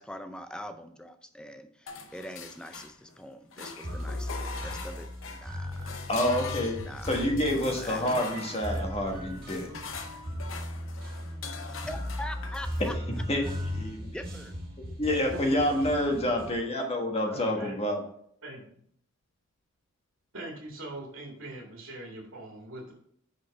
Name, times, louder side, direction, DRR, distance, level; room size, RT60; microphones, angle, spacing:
voice 1, 0.0-5.9 6.8-7.2 7.7-8.4 11.9-12.9 14.0-14.6, left 1 dB, 5° left, 8 dB, 0.4 m, -43 dB
sound 1, 1.9-3.2 3.5-12.9, left 5 dB, 70° left, 0.8 m, -43 dB
sound 2, 3.8-16.6, equal, 45° right, 1.6 m, -37 dB
voice 2, 6.1-9.7 12.8-14.1 15.0-18.0, left 1 dB, 30° left, 2 dB, 1.4 m, -28 dB
voice 3, 15.3-15.9 17.3-17.8 18.4-18.8 20.3-22.9, right 1 dB, 75° right, -1 dB, 1.8 m, -42 dB
6.1 x 5.1 x 4.7 m, 0.66 s
head